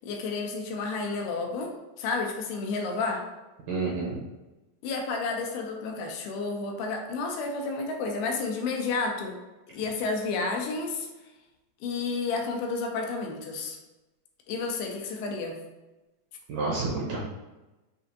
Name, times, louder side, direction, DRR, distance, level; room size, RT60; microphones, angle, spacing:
voice 1, 0.0-3.2 4.8-9.4 9.7-11.1 11.8-13.8 14.5-15.6, left 4 dB, 85° left, 2 dB, 2.5 m, -31 dB
voice 2, 3.7-4.2 16.5-17.2, right 3 dB, 75° right, -5 dB, 2.0 m, -29 dB
6.6 x 2.5 x 2.6 m, 1.1 s
omnidirectional pair, 4.4 m